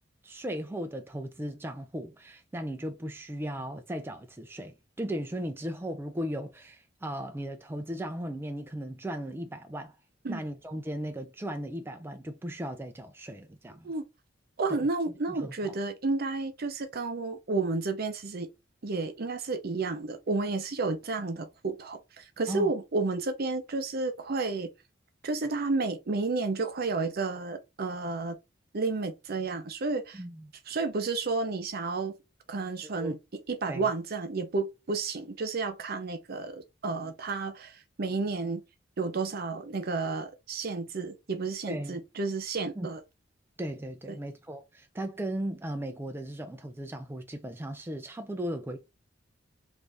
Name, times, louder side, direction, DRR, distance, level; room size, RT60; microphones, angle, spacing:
voice 1, 0.2-10.0 10.3-13.9 14.7-14.9 15.4-15.8 22.5-22.7 30.1-30.5 32.8-33.2 33.7-33.9 37.0-37.1 41.7-42.0 42.8-42.9 43.6-48.8, right 1 dB, 10° right, 0.4 m, -37 dB
voice 2, 14.6-18.5 18.8-24.7 25.2-28.4 28.7-30.2 30.7-32.1 32.5-33.2 33.5-38.6 39.0-43.0 44.1-44.2, right 3 dB, 55° right, 0.6 m, -31 dB
3.2 x 2.6 x 3.4 m
head